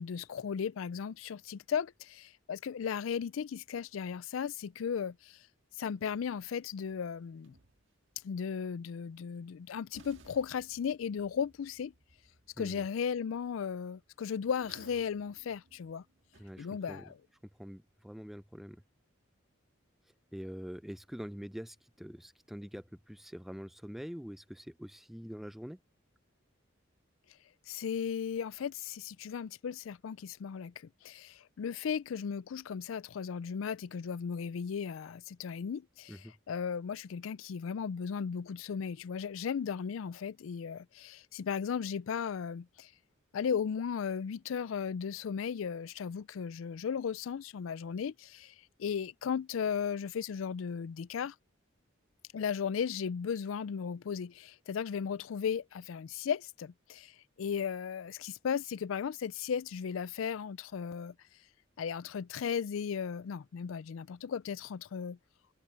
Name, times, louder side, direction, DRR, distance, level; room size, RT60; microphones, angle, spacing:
voice 1, 0.0-5.4 5.8-7.5 8.2-11.9 12.6-16.0 16.6-17.2 27.7-30.7 31.0-42.9 43.3-48.5 48.8-51.3 52.3-61.1 61.8-65.2, left 7 dB, 80° left, 0.4 m, -36 dB
sound 1, 5.8-8.2 9.4-9.5 9.9-17.4, right 2 dB, 65° right, 1.7 m, -62 dB
voice 2, 16.4-17.1 17.6-18.8 20.3-25.8 36.1-36.3, equal, ahead, 0.4 m, -45 dB
head